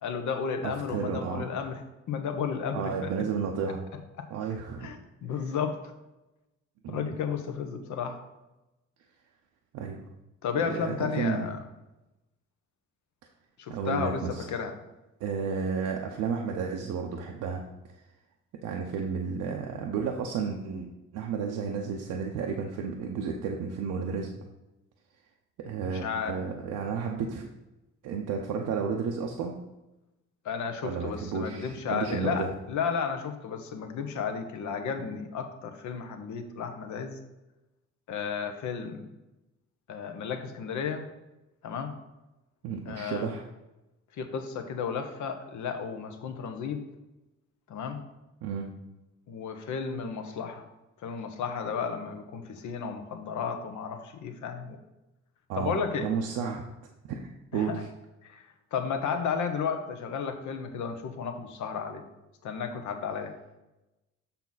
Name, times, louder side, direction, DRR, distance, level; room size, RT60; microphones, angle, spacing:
voice 1, 0.0-1.8 2.1-3.1 4.2-4.3 4.8-5.0 5.2-5.8 6.9-8.2 10.4-11.6 13.6-14.2 14.5-14.8 25.8-26.4 30.4-37.2 38.1-39.1 39.9-41.1 41.6-41.9 42.9-43.3 44.2-46.8 47.7-48.0 49.3-50.7 51.0-54.8 55.5-56.1 57.5-57.8 58.2-58.4 58.7-62.0 62.4-63.4, left 6 dB, 75° left, 6 dB, 1.1 m, -33 dB
voice 2, 0.6-1.5 2.7-3.9 4.3-4.9 6.8-7.1 9.7-10.0 10.6-11.5 13.7-14.4 15.2-17.6 18.6-24.3 25.6-27.5 28.0-29.6 30.8-32.5 42.6-43.4 48.4-48.7 55.5-56.6 57.1-57.9, right 6 dB, 85° right, 1 dB, 0.8 m, -32 dB
6.9 x 5.9 x 4.0 m, 0.99 s
cardioid pair, 90°, 30 cm